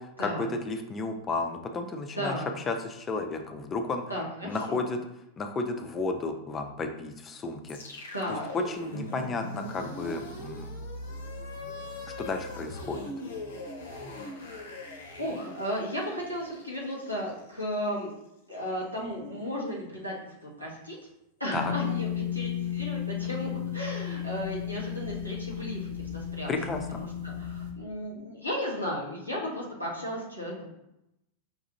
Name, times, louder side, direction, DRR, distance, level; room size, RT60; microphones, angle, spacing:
voice 1, 0.0-2.4 2.7-4.0 4.4-5.0 5.4-7.8 8.5-10.7 12.2-13.0 21.5-21.7 26.5-27.0, left 3 dB, 20° left, 5 dB, 0.5 m, -32 dB
voice 2, 2.1-2.5 4.1-4.8 8.1-8.4 14.2-14.6 15.1-18.1 18.5-21.0 21.4-26.5 26.9-30.7, equal, 90° right, -4 dB, 1.1 m, -35 dB
sound 1, 7.7-17.9, left 2 dB, 65° left, 0.6 m, -40 dB
sound 2, 21.5-27.7, left 10 dB, 70° right, 0.7 m, -34 dB
5.2 x 2.4 x 2.9 m, 0.85 s
figure-of-eight pair, 90°, 0 cm